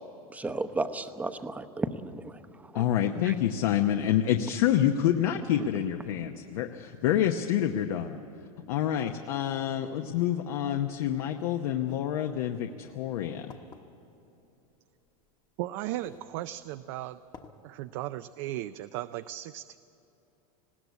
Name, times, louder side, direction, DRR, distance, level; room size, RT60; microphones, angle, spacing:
voice 1, 0.3-2.3 2.7-2.8 3.2-3.3, right 2 dB, 10° right, 10 dB, 0.8 m, -33 dB
voice 2, 2.7-8.2 8.7-13.5, left 10 dB, 70° left, 5 dB, 1.0 m, -27 dB
sound 1, 11.8-12.0 12.8-12.9 13.5-13.8 15.1-15.2 15.9-16.3 16.7-16.8 17.3-17.5, left 6 dB, 20° left, 1.1 m, -49 dB
voice 3, 15.6-17.2 17.6-19.8, right 15 dB, 55° right, 12 dB, 0.5 m, -36 dB
20.0 x 16.5 x 8.3 m, 3.0 s
supercardioid pair, 140°, 19 cm